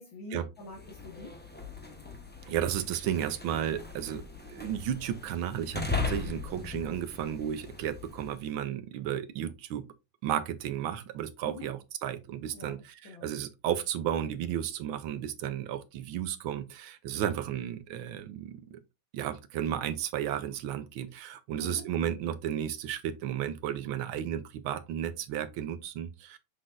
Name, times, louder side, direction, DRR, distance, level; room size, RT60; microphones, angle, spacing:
voice 1, 0.0-1.4 11.4-11.7 12.5-13.3 21.6-21.9, left 3 dB, 70° left, 2.1 m, -45 dB
sound 1, 0.6-8.4, left 4 dB, 10° left, 0.4 m, -38 dB
voice 2, 2.5-9.8 10.2-18.8 19.1-26.4, right 10 dB, 80° right, 1.5 m, -33 dB
6.3 x 6.0 x 2.5 m
omnidirectional pair, 2.3 m